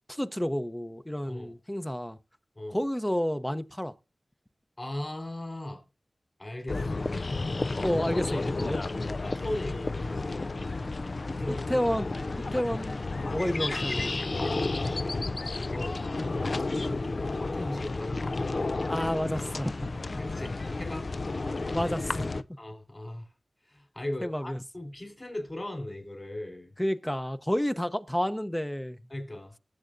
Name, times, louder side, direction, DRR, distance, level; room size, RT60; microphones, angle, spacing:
voice 1, 0.1-2.2 2.7-3.9 7.8-8.8 11.5-12.1 12.5-13.0 13.3-14.3 15.7-15.9 18.9-20.2 21.7-22.3 24.2-24.6 26.8-29.0, equal, 10° left, 0.7 m, -30 dB
voice 2, 4.8-5.8 6.4-7.1 8.6-8.8 9.2-10.4 11.3-11.7 14.8-15.2 15.6-16.0 17.3-18.1 20.2-21.1 22.6-23.3 23.7-26.7 29.1-29.5, left 1 dB, 35° left, 3.9 m, -38 dB
sound 1, 6.7-22.4, left 3 dB, 60° left, 0.4 m, -32 dB
19.0 x 7.3 x 2.6 m
cardioid pair, 45°, 0 cm